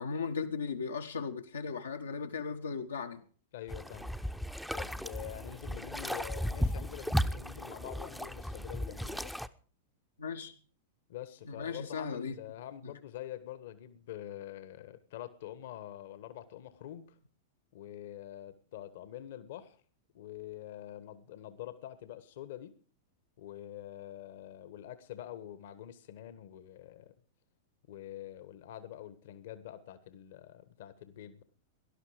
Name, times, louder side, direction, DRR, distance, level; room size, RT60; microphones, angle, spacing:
voice 1, 0.0-3.2 10.2-10.5 11.4-12.4 12.8-12.9, left 5 dB, 80° left, 1.5 m, -37 dB
voice 2, 3.5-4.1 4.7-9.3 11.1-17.1 17.7-19.8 20.1-22.7 23.4-27.1 27.9-31.4, left 12 dB, 60° left, 1.5 m, -46 dB
sound 1, 3.7-9.5, equal, ahead, 0.8 m, -35 dB
18.5 x 12.0 x 5.0 m
figure-of-eight pair, 95°, 0 cm